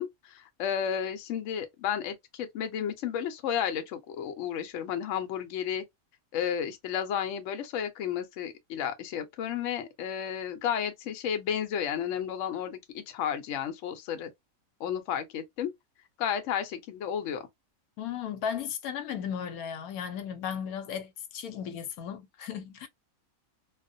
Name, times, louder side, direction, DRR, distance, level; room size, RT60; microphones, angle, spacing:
voice 1, 0.0-5.8 6.3-14.3 14.8-15.7 16.2-17.5, left 8 dB, 65° left, 0.9 m, -32 dB
voice 2, 18.0-22.9, left 8 dB, 90° left, 1.1 m, -35 dB
2.4 x 2.1 x 2.5 m
omnidirectional pair, 1.5 m